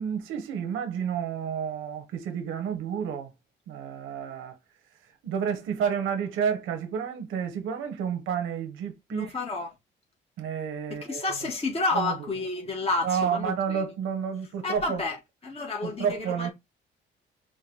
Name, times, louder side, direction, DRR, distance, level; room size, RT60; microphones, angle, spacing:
voice 1, 0.0-3.3 3.7-4.6 5.2-9.4 10.4-11.3 11.9-12.3 13.0-15.0 15.8-16.5, right 7 dB, 90° right, 1.3 m, -30 dB
voice 2, 9.1-9.7 10.9-13.8 14.6-15.2 15.4-16.5, left 3 dB, 30° left, 1.7 m, -30 dB
5.1 x 2.5 x 4.0 m
cardioid pair, 90°, 20 cm